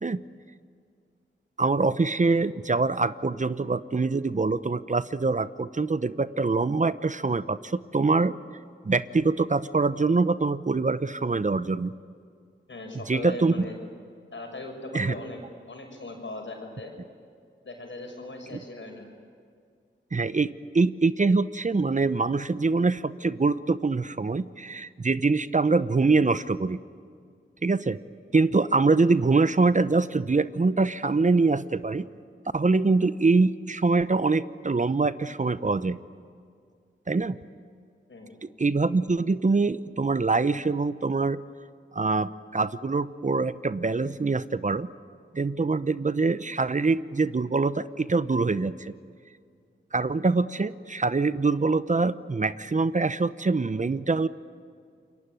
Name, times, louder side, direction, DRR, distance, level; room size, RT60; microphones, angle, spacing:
voice 1, 1.6-8.3 8.8-11.9 13.1-13.7 14.9-15.1 18.5-18.6 20.1-26.8 27.6-28.0 28.3-32.0 32.5-36.0 37.1-37.4 38.6-41.4 41.9-44.9 45.3-48.9 49.9-54.3, right 3 dB, 35° right, 14 dB, 0.8 m, -24 dB
voice 2, 12.7-13.7 14.3-15.4 15.7-16.9 17.6-19.0 38.1-38.3, left 2 dB, 65° left, 3 dB, 6.5 m, -39 dB
27.5 x 22.5 x 9.3 m, 2.1 s
cardioid pair, 50°, 21 cm